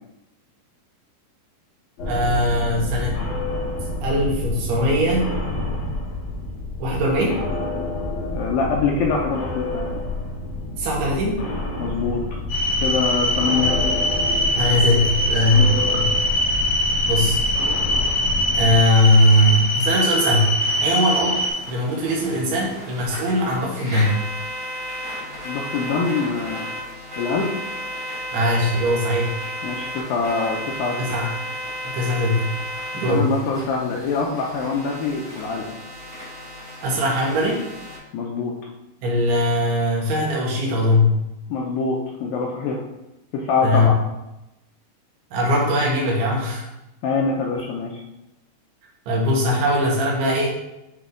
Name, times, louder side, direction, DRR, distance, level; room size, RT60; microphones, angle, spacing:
sound 1, 2.0-18.8, left 2 dB, 65° left, 1.7 m, -28 dB
voice 1, 2.1-3.2 4.0-5.3 6.8-7.4 10.8-11.4 14.6-16.1 17.1-17.4 18.6-21.4 21.7-24.1 28.3-29.3 31.0-31.3 31.9-32.4 32.9-33.3 36.8-37.6 39.0-41.2 43.6-43.9 45.3-46.7 49.1-50.5, left 1 dB, 80° right, -2 dB, 2.8 m, -20 dB
voice 2, 8.3-10.0 11.8-12.4 12.8-13.9 15.5-15.8 25.4-26.7 27.2-27.5 29.6-31.0 33.1-35.7 38.1-38.5 41.5-42.8 43.3-44.0 47.0-48.0, left 4 dB, 85° left, -1 dB, 2.0 m, -24 dB
sound 2, 12.5-21.5, left 1 dB, 50° left, 1.9 m, -22 dB
sound 3, 19.9-38.0, equal, 65° right, 0.7 m, -34 dB
7.8 x 3.2 x 3.7 m, 0.92 s
omnidirectional pair, 4.7 m